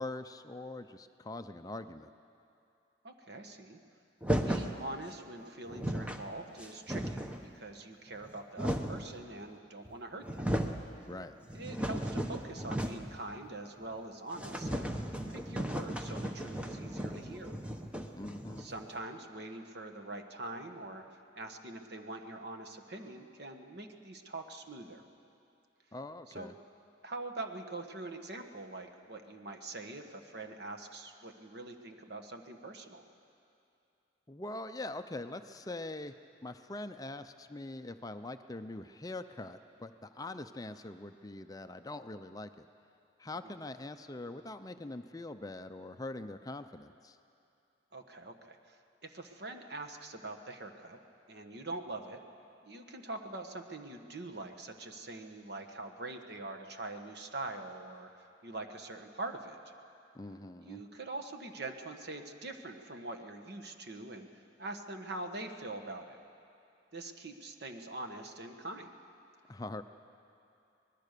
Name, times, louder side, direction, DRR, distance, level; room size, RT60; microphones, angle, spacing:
voice 1, 0.0-2.1 11.1-11.4 18.2-18.7 25.9-26.5 34.3-36.1 36.4-42.7 43.2-47.2 60.1-60.8 69.5-69.8, left 2 dB, 20° left, 9 dB, 0.5 m, -43 dB
voice 2, 3.0-3.8 4.4-7.2 7.5-10.5 11.5-14.9 15.3-17.6 18.6-25.1 26.3-26.5 27.0-33.0 43.4-43.6 47.9-51.0 51.3-52.2 52.6-59.6 60.6-64.3 64.6-66.2 66.9-68.9, right 2 dB, 60° right, 5 dB, 1.5 m, -44 dB
sound 1, 4.2-4.8 5.4-5.5 5.7-6.2 6.6-7.5 8.1-9.1 9.8-9.9 10.2-10.8 11.2-13.2 13.4-13.5 13.9-14.0 14.3-18.8, equal, 5° right, 0.9 m, -35 dB
25.0 x 20.0 x 6.7 m, 2.7 s
head